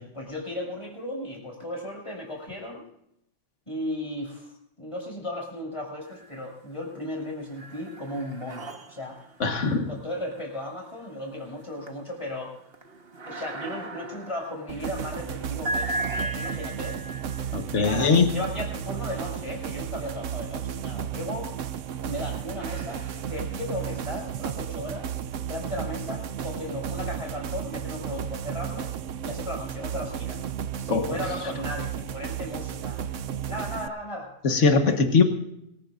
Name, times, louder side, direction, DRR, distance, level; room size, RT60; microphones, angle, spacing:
voice 1, 0.1-2.8 3.7-4.5 4.8-9.2 9.9-12.6 13.3-17.0 17.7-21.5 22.0-25.2 25.4-28.9 29.2-30.4 30.8-33.0 33.5-34.3 34.6-34.7, left 1 dB, 25° left, -1 dB, 6.9 m, -36 dB
sound 1, 6.0-6.7 7.1-20.2 20.9-25.3, right 1 dB, 55° right, 1.6 m, -39 dB
voice 2, 9.4-9.9 17.5-18.3 30.9-31.1 34.4-35.2, left 4 dB, 75° left, 4 dB, 1.9 m, -21 dB
sound 2, 14.7-33.9, right 9 dB, 85° right, 1.1 m, -33 dB
25.5 x 15.5 x 2.6 m, 0.78 s
omnidirectional pair, 1.3 m